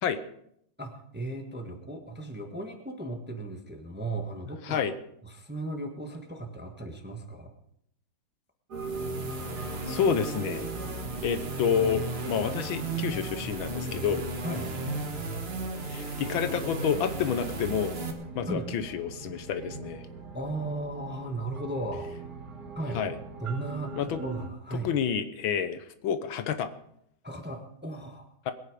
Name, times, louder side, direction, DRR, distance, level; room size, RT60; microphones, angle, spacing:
voice 1, 0.8-4.8 5.2-7.5 14.4-14.7 18.5-18.7 20.3-22.1 22.7-23.0 23.4-24.9 27.2-28.3, right 2 dB, 5° right, 4 dB, 1.1 m, -36 dB
sound 1, 8.7-18.1, right 2 dB, 35° right, 1.5 m, -35 dB
sound 2, 8.7-24.5, right 4 dB, 55° right, 3.1 m, -42 dB
voice 2, 9.6-10.7 11.2-14.2 15.8-17.9 18.3-20.1 22.9-23.2 23.9-24.2 24.8-26.7, left 7 dB, 75° left, 11 dB, 1.7 m, -29 dB
21.0 x 9.0 x 5.1 m, 0.71 s
omnidirectional pair, 2.2 m